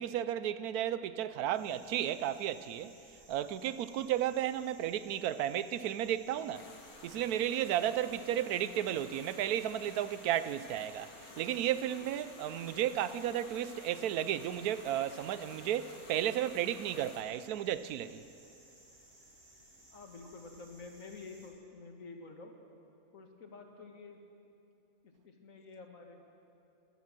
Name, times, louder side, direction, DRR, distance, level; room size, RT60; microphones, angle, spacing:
voice 1, 0.0-2.9 3.3-6.6 7.0-18.2, right 11 dB, 80° right, 1.1 m, -33 dB
sound 1, 1.5-21.5, right 1 dB, 40° right, 3.0 m, -60 dB
sound 2, 6.5-17.2, left 3 dB, 75° left, 1.8 m, -53 dB
voice 2, 19.9-22.5 23.1-24.2 25.0-26.2, left 4 dB, 60° left, 1.9 m, -50 dB
14.5 x 13.0 x 7.6 m
omnidirectional pair, 1.6 m